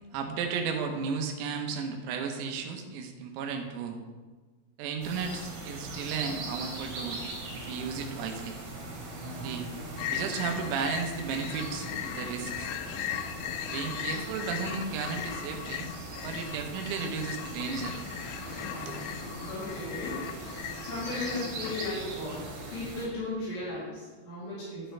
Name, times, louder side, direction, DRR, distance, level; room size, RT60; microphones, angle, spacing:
voice 1, 0.1-4.0 4.8-7.2 7.5-8.6 9.4-9.7 10.1-12.7 13.7-15.9 16.2-18.0 18.9-19.0, right 5 dB, 90° right, 3 dB, 3.7 m, -34 dB
sound 1, 5.0-23.1, right 2 dB, 65° right, 4.4 m, -41 dB
sound 2, 10.0-21.9, left 11 dB, 85° left, 3.0 m, -38 dB
voice 2, 19.4-24.9, left 2 dB, 60° left, -9 dB, 5.0 m, -36 dB
10.5 x 9.9 x 3.3 m, 1.3 s
omnidirectional pair, 5.9 m